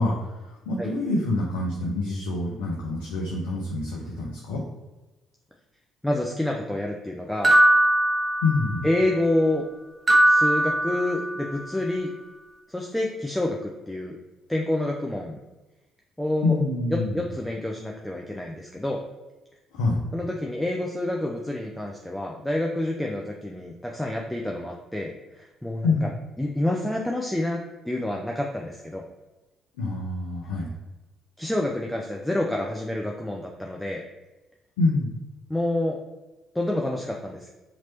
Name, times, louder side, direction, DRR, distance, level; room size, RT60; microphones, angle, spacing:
voice 1, 0.0-4.6 8.4-8.9 16.4-17.2 19.7-20.0 25.8-26.1 29.8-30.7 34.8-35.1, left 3 dB, 70° left, -2 dB, 0.5 m, -26 dB
voice 2, 6.0-7.6 8.8-9.6 10.2-12.1 12.7-14.2 14.5-15.4 16.2-16.6 16.9-19.0 20.1-26.1 26.4-27.6 27.8-29.0 31.4-34.0 35.5-36.0 36.5-37.5, left 1 dB, 5° left, -1 dB, 0.4 m, -28 dB
sound 1, 7.4-8.9 10.1-11.5, right 1 dB, 35° right, 0.8 m, -20 dB
3.0 x 2.9 x 4.2 m, 1.1 s
figure-of-eight pair, 45°, 0 cm